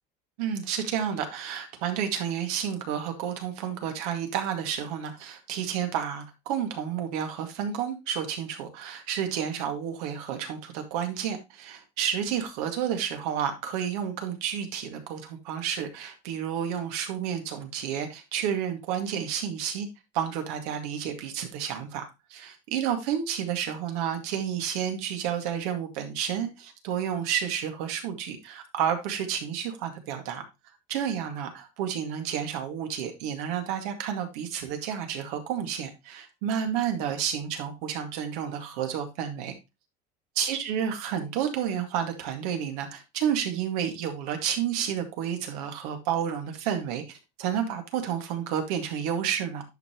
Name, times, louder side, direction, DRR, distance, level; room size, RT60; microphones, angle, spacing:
voice 1, 0.4-19.9 20.1-30.4 30.9-39.5 40.4-49.6, right 9 dB, 85° right, 2.2 m, -30 dB
10.5 x 5.6 x 3.0 m
cardioid pair, 155°, 19 cm